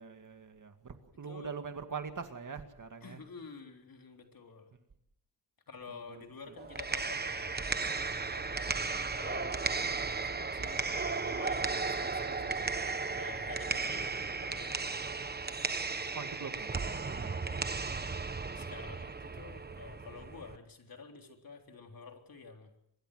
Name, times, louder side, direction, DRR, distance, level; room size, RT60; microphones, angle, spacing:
voice 1, 0.0-3.2 6.1-6.6 16.1-17.4, right 5 dB, 50° right, 7 dB, 2.1 m, -43 dB
voice 2, 1.2-1.6 3.0-4.7 5.7-7.6 8.3-11.0 11.2-12.7 13.1-14.1 14.4-14.9 17.4-17.7 18.5-22.7, left 5 dB, 60° left, 3 dB, 3.8 m, -49 dB
sound 1, 6.6-20.6, right 4 dB, 25° right, 1.1 m, -35 dB
24.5 x 22.5 x 6.4 m, 0.76 s
wide cardioid pair, 140°, 39 cm